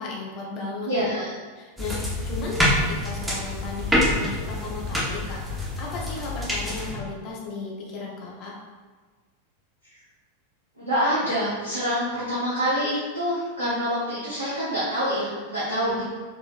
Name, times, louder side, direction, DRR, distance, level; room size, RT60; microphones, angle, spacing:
voice 1, 0.0-1.1 1.6-2.0 2.2-5.4 5.8-8.5 15.8-16.0, left 3 dB, 40° left, -3 dB, 0.8 m, -35 dB
voice 2, 0.8-1.3 9.9-10.0 10.8-16.0, equal, 85° right, -11 dB, 1.1 m, -26 dB
sound 1, 1.8-6.9, left 1 dB, 10° right, 1.0 m, -26 dB
4.4 x 2.9 x 2.5 m, 1.4 s
figure-of-eight pair, 90°, 0 cm